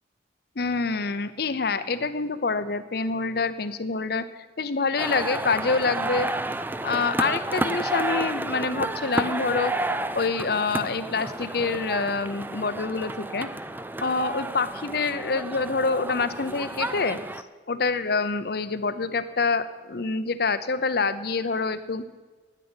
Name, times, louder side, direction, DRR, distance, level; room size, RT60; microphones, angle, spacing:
voice 1, 0.6-4.3 4.6-6.3 6.8-9.7 10.1-13.5 14.0-17.2 17.7-22.0, left 4 dB, 60° left, 12 dB, 0.8 m, -26 dB
sound 1, 5.0-17.4, right 2 dB, 10° right, 0.4 m, -31 dB
10.0 x 9.4 x 8.9 m, 1.3 s
head